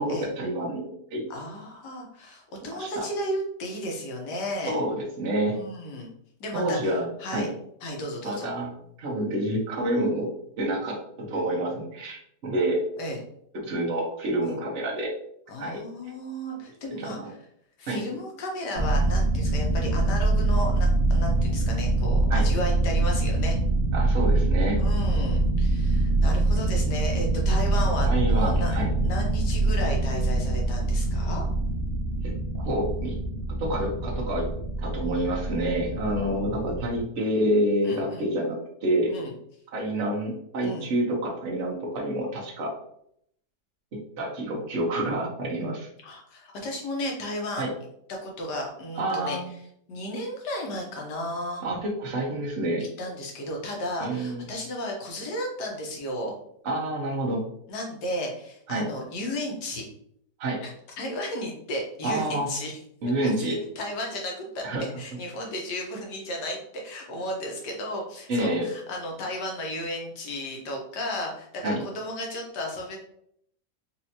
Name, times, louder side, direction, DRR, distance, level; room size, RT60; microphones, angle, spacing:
voice 1, 0.0-1.2 2.6-3.1 4.7-5.6 6.5-7.5 8.2-10.3 10.6-12.8 13.6-15.1 15.6-15.8 17.0-17.3 17.9-18.0 22.3-22.5 23.9-24.8 28.0-28.9 32.5-33.2 33.6-34.5 34.8-39.1 39.7-42.7 43.9-45.9 47.6-47.7 48.9-49.5 51.6-52.8 54.0-54.5 56.6-57.4 58.7-58.9 60.4-60.6 62.0-62.5 63.0-63.6 64.6-64.8 68.3-68.7 71.6-71.8, right 1 dB, 50° right, -3 dB, 1.2 m, -28 dB
voice 2, 1.3-4.8 5.5-6.1 6.4-6.9 7.2-7.5 7.8-8.5 13.0-13.2 14.4-14.6 15.5-17.2 17.8-23.6 24.8-31.4 35.7-36.7 37.8-38.3 39.1-39.3 40.6-40.9 46.0-47.7 48.1-49.4 49.9-51.6 53.0-56.3 57.7-59.8 60.6-60.7 61.0-62.8 63.2-64.6 65.0-73.0, left 1 dB, 80° left, 0 dB, 1.5 m, -34 dB
sound 1, 18.7-37.0, right 2 dB, 25° right, 0.7 m, -24 dB
4.3 x 2.6 x 2.8 m, 0.70 s
omnidirectional pair, 1.8 m